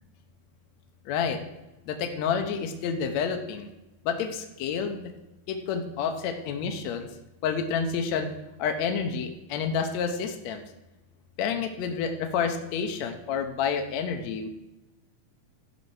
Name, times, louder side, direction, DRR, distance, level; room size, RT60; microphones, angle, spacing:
voice 1, 1.0-1.4 1.9-3.7 4.0-5.1 5.5-7.1 7.4-8.3 8.6-10.6 11.4-14.5, left 6 dB, 75° left, 4 dB, 1.7 m, -29 dB
13.5 x 5.5 x 4.7 m, 0.95 s
omnidirectional pair, 4.1 m